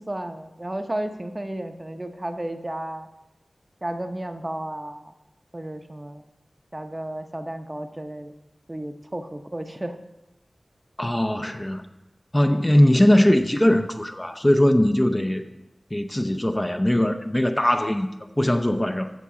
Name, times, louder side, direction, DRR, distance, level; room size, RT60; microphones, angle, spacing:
voice 1, 0.0-3.1 3.8-5.1 5.5-6.2 6.7-8.3 8.7-10.0, right 1 dB, 25° right, 7 dB, 0.7 m, -33 dB
voice 2, 11.0-11.9 12.3-15.4 15.9-19.1, left 1 dB, 20° left, 7 dB, 0.5 m, -20 dB
14.0 x 5.8 x 3.7 m, 0.98 s
wide cardioid pair, 60°, 0 cm